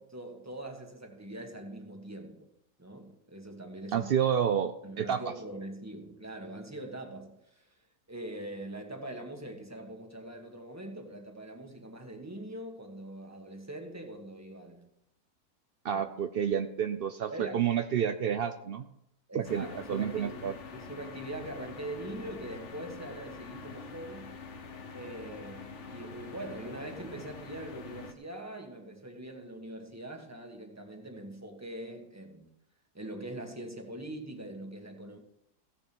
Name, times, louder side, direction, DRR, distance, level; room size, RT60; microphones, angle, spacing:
voice 1, 0.0-2.5 2.8-4.1 4.8-7.8 8.1-14.9 15.9-16.0 17.3-17.6 19.3-24.4 24.9-32.5 32.9-35.2, right 1 dB, 10° right, 1.5 m, -43 dB
voice 2, 3.9-5.2 15.8-18.9 19.3-20.5, right 8 dB, 70° right, 0.5 m, -29 dB
sound 1, 19.4-28.1, left 5 dB, 50° left, 1.4 m, -45 dB
16.0 x 7.2 x 6.2 m
omnidirectional pair, 1.7 m